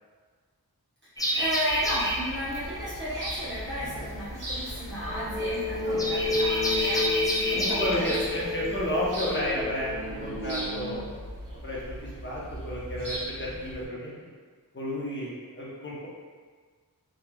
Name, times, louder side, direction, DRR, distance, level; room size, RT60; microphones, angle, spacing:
voice 1, 1.0-8.4, equal, 30° right, -13 dB, 0.9 m, -34 dB
sound 1, 1.2-9.4, equal, 10° left, 0.4 m, -30 dB
sound 2, 1.7-13.9, right 1 dB, 60° right, 0.7 m, -39 dB
sound 3, 5.0-10.9, left 3 dB, 55° left, 1.1 m, -31 dB
voice 2, 5.9-6.4 7.5-11.3 11.6-14.1 14.7-16.1, left 1 dB, 30° left, -5 dB, 0.8 m, -32 dB
3.0 x 2.3 x 2.3 m, 1.5 s
wide cardioid pair, 45°, 37 cm